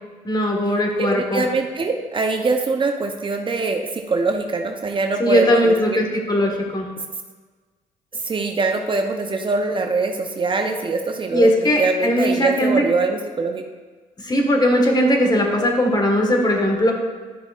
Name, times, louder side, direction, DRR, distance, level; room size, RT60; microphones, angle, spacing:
voice 1, 0.2-1.5 5.2-6.9 11.3-12.8 14.2-16.9, equal, 25° left, 2 dB, 1.5 m, -19 dB
voice 2, 1.0-6.0 8.1-11.5 11.8-13.6, right 3 dB, 35° right, 4 dB, 0.7 m, -23 dB
11.0 x 6.2 x 2.4 m, 1.4 s
supercardioid pair, 70°, 15 cm